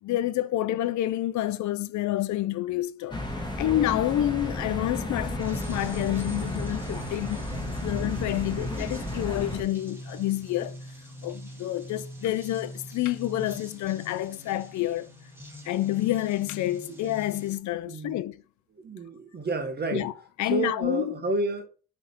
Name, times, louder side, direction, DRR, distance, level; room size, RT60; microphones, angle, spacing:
voice 1, 0.0-3.2 3.6-10.8 11.2-15.1 15.6-18.4 19.9-20.1 20.4-21.2, left 14 dB, 70° left, 0.5 m, -28 dB
sound 1, 3.1-9.6, left 1 dB, 15° left, 1.7 m, -33 dB
sound 2, 5.4-17.6, right 1 dB, 10° right, 1.7 m, -43 dB
voice 2, 17.9-18.2 18.8-20.1 20.5-21.7, right 3 dB, 35° right, 1.4 m, -30 dB
6.3 x 3.5 x 4.4 m
cardioid pair, 90°, 30 cm